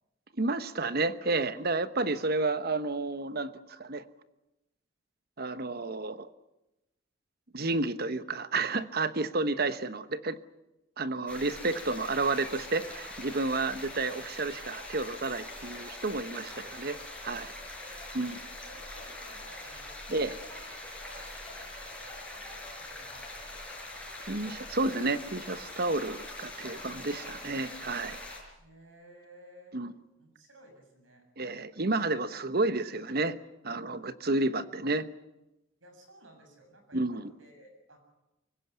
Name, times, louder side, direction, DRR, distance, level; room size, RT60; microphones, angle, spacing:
voice 1, 0.4-4.0 5.4-6.3 7.5-10.4 11.0-17.0 17.2-17.5 18.1-18.4 20.1-20.3 24.3-28.2 29.7-29.9 31.4-33.4 33.6-35.1 36.9-37.3, right 3 dB, 50° right, 13 dB, 1.1 m, -31 dB
sound 1, 11.3-28.4, left 1 dB, 5° left, 5.1 m, -43 dB
voice 2, 13.6-14.0 17.4-20.7 21.0-23.9 28.6-29.8 30.2-31.2 35.8-38.0, right 1 dB, 85° right, 5 dB, 7.5 m, -56 dB
25.0 x 16.0 x 9.7 m, 0.96 s
head